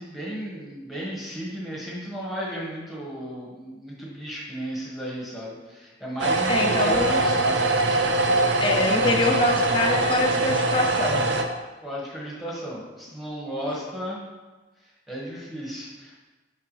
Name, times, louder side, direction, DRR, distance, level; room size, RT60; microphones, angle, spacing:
voice 1, 0.0-7.7 11.8-14.2 15.1-16.2, equal, ahead, -5 dB, 1.6 m, -34 dB
sound 1, 6.2-11.4, right 2 dB, 70° right, 0.6 m, -23 dB
voice 2, 6.5-7.2 8.6-11.3 13.7-13.8, left 2 dB, 25° left, 1 dB, 0.5 m, -24 dB
7.0 x 4.8 x 3.3 m, 1.2 s
head